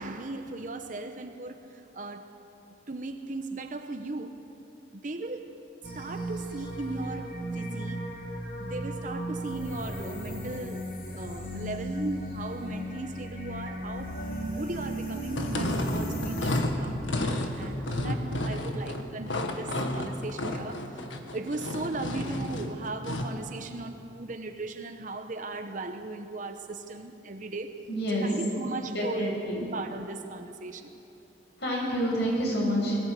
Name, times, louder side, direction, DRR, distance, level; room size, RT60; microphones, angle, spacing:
voice 1, 0.0-2.4 2.9-4.4 4.9-5.6 5.9-8.3 8.6-27.9 28.2-31.0, right 2 dB, 45° right, 0.9 m, -38 dB
sound 1, 5.8-16.6, right 1 dB, 50° left, 3.1 m, -36 dB
sound 2, 15.3-23.4, left 1 dB, 90° left, 1.7 m, -31 dB
voice 2, 27.9-28.3 28.9-29.5 31.6-33.0, equal, 65° left, 6.8 m, -28 dB
22.5 x 15.5 x 8.4 m
head